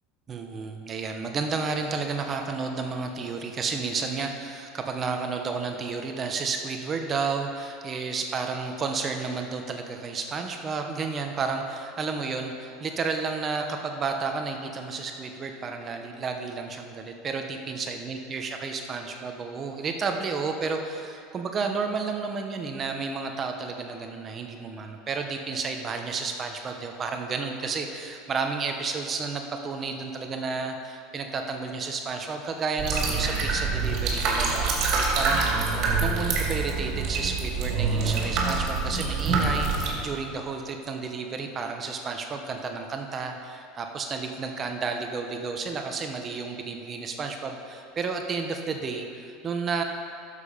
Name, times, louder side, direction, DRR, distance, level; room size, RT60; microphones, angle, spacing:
voice 1, 0.3-35.4 35.7-49.8, right 4 dB, 30° right, 4 dB, 0.9 m, -31 dB
sound 1, 32.8-39.9, right 4 dB, 50° right, 2.6 m, -26 dB
12.0 x 6.8 x 5.1 m, 2.6 s
supercardioid pair, 125°, 0 cm